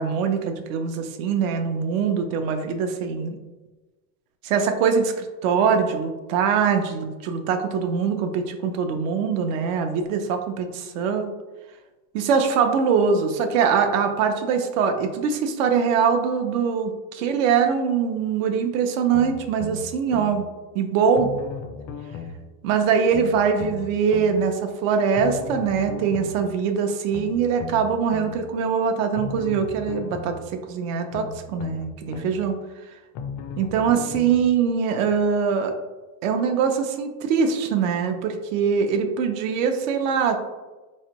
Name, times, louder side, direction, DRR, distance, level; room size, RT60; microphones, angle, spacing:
voice 1, 0.0-3.4 4.4-11.3 12.1-20.5 20.7-21.3 22.6-32.6 33.6-35.7 36.2-40.4, right 6 dB, 80° right, 6 dB, 0.7 m, -23 dB
sound 1, 19.1-20.4 21.1-22.4 23.1-24.4 25.1-26.4 27.1-28.4 29.1-30.4 31.1-32.4 33.1-34.4 35.1-35.2, left 6 dB, 45° left, 0.5 m, -35 dB
3.6 x 3.2 x 2.9 m, 1.2 s
supercardioid pair, 125°, 39 cm